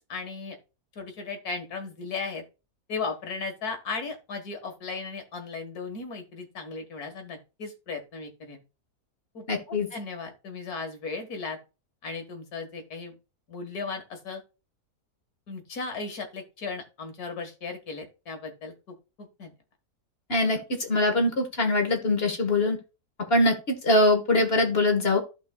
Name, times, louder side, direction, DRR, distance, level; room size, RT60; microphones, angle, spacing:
voice 1, 0.1-0.6 0.9-2.4 2.9-8.6 9.3-11.6 12.0-13.2 13.5-14.4 15.5-19.5, left 4 dB, 75° left, 5 dB, 2.1 m, -36 dB
voice 2, 9.5-9.9 20.3-22.8 23.3-23.6 23.8-25.2, left 2 dB, 40° left, 4 dB, 1.8 m, -23 dB
14.5 x 5.1 x 2.3 m, 0.30 s
omnidirectional pair, 1.6 m